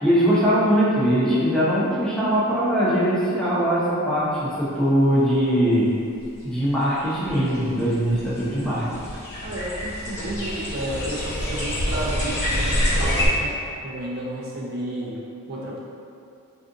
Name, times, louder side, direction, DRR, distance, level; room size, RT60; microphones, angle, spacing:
voice 1, 0.0-5.9 6.4-8.8, equal, 5° left, -10 dB, 0.6 m, -21 dB
sound 1, 6.2-6.3 7.0-13.3, equal, 50° left, 0.9 m, -27 dB
voice 2, 9.4-13.5 13.8-15.2 15.5-15.8, right 1 dB, 45° right, -6 dB, 0.5 m, -32 dB
2.5 x 2.4 x 3.6 m, 2.6 s
head